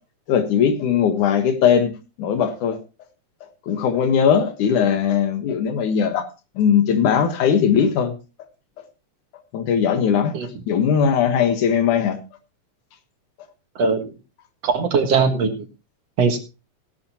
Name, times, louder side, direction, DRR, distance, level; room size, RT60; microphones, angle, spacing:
voice 1, 0.3-1.9 2.2-2.8 3.7-6.3 6.6-8.1 9.5-10.3 10.7-12.2, left 7 dB, 85° left, 2.9 m, -19 dB
voice 2, 13.8-14.1 14.6-15.5 16.2-16.4, right 5 dB, 60° right, 2.6 m, -20 dB
17.0 x 11.5 x 2.9 m
omnidirectional pair, 3.4 m